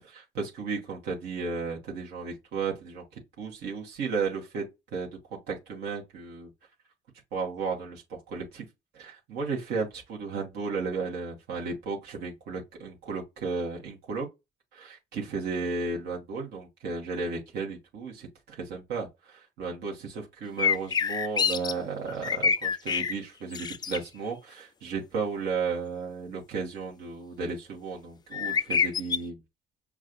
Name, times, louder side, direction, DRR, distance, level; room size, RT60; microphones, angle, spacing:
voice 1, 0.1-6.5 7.3-8.7 8.9-14.3 14.7-29.4, right 4 dB, 80° right, 1.3 m, -34 dB
sound 1, 20.6-21.7 22.1-23.1 23.5-24.0 28.3-29.2, left 6 dB, 25° left, 0.3 m, -26 dB
6.1 x 2.4 x 2.5 m
cardioid pair, 110°, 17 cm